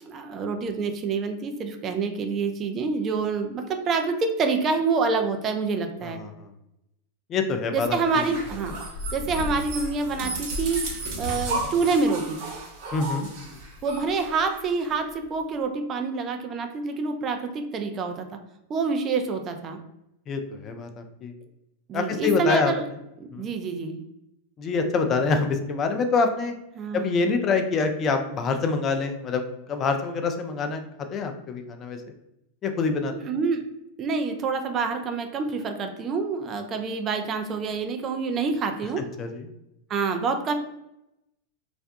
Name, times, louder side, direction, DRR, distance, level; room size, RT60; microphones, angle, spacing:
voice 1, 0.0-6.2 7.7-8.8 9.1-10.9 11.2-12.4 13.8-18.3 18.7-19.8 21.9-22.8 23.2-24.0 26.7-27.1 33.1-33.7 34.0-39.1 39.9-40.5, right 4 dB, 35° right, 6 dB, 0.4 m, -27 dB
voice 2, 6.0-6.5 7.3-8.3 12.9-13.6 20.3-21.3 21.9-22.7 23.3-23.5 24.6-26.5 26.9-30.8 31.1-32.0 32.6-33.1 39.0-39.4, left 4 dB, 35° left, 6 dB, 0.4 m, -26 dB
sound 1, 8.0-14.9, right 1 dB, 55° right, 0.9 m, -33 dB
2.4 x 2.2 x 2.6 m, 0.85 s
hypercardioid pair, 100°, 0 cm